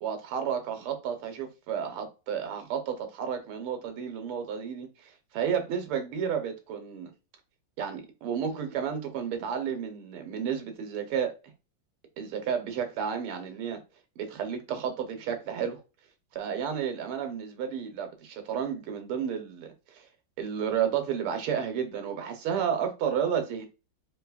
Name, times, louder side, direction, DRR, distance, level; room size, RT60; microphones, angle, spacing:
voice 1, 0.0-7.1 7.8-11.4 12.2-13.8 14.2-15.8 16.3-20.1 20.4-23.7, right 8 dB, 80° right, 1.8 m, -32 dB
4.3 x 3.4 x 2.3 m
omnidirectional pair, 2.4 m